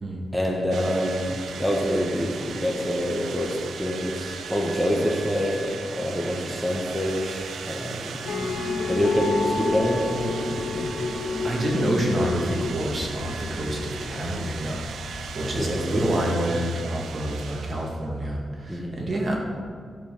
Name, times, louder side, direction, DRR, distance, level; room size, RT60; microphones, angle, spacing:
voice 1, 0.3-8.3 8.9-10.9 14.1-14.4 15.4-16.3 18.7-19.0, equal, 5° left, -2 dB, 1.1 m, -27 dB
sound 1, 0.7-18.2, right 6 dB, 90° right, 0.7 m, -38 dB
sound 2, 8.2-15.8, left 3 dB, 80° left, 2.6 m, -30 dB
voice 2, 11.4-14.8 15.3-19.4, right 1 dB, 35° right, -1 dB, 1.8 m, -28 dB
13.0 x 7.2 x 5.6 m, 2.1 s
wide cardioid pair, 170°, 0 cm